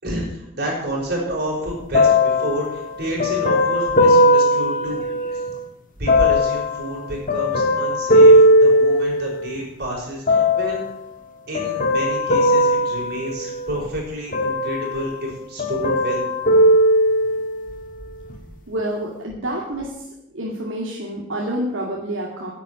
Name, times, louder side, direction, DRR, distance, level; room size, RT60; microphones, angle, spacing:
voice 1, 0.0-5.0 6.0-10.8 11.5-16.2, right 1 dB, 50° right, -3 dB, 5.5 m, -29 dB
sound 1, 1.9-5.5 6.1-9.6 10.3-10.9 11.5-13.9 14.3-15.3 15.6-17.6 18.3-18.4, equal, 40° left, 1.6 m, -18 dB
voice 2, 18.7-20.0 20.3-22.5, right 1 dB, 70° right, -3 dB, 2.3 m, -28 dB
11.0 x 8.3 x 8.1 m, 0.82 s
head